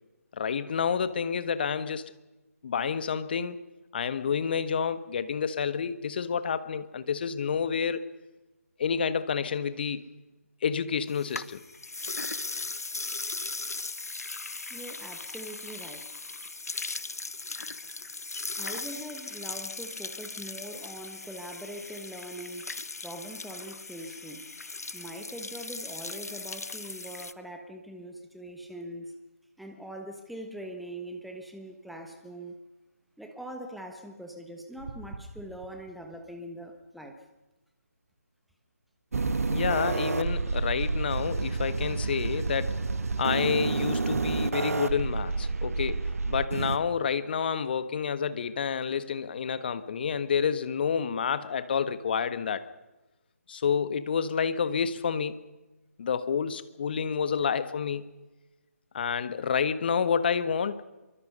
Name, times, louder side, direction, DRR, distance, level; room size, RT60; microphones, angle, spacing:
voice 1, 0.3-2.1 2.6-3.6 3.9-8.0 8.8-10.1 10.6-11.6 39.5-52.7 53.5-55.4 56.0-58.1 58.9-60.8, left 6 dB, 35° left, 13 dB, 1.4 m, -29 dB
sound 1, 11.1-27.3, left 3 dB, 70° left, 1.2 m, -38 dB
voice 2, 14.7-16.1 18.5-22.7 23.0-24.5 24.9-29.1 29.6-32.6 33.2-37.2, right 1 dB, ahead, 4 dB, 1.4 m, -42 dB
sound 2, 34.8-36.6 39.1-41.6 44.1-44.3, right 4 dB, 40° right, 3.1 m, -37 dB
sound 3, 39.1-46.8, right 3 dB, 65° right, 1.5 m, -29 dB
25.5 x 23.5 x 5.6 m, 1.1 s
figure-of-eight pair, 155°, 9 cm